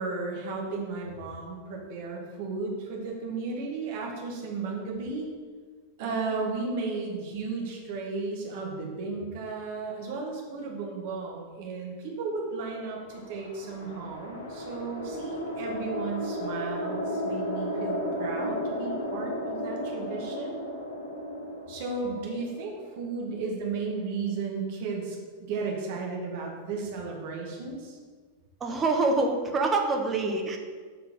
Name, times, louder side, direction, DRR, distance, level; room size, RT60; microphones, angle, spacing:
voice 1, 0.0-5.3 6.0-20.6 21.7-25.2 25.5-28.0, right 4 dB, 50° right, -1 dB, 2.1 m, -34 dB
sound 1, 12.9-23.3, left 1 dB, 65° left, 1.5 m, -34 dB
voice 2, 28.6-30.6, right 3 dB, 20° right, 2 dB, 1.2 m, -26 dB
6.8 x 5.6 x 5.4 m, 1.5 s
figure-of-eight pair, 90°, 0 cm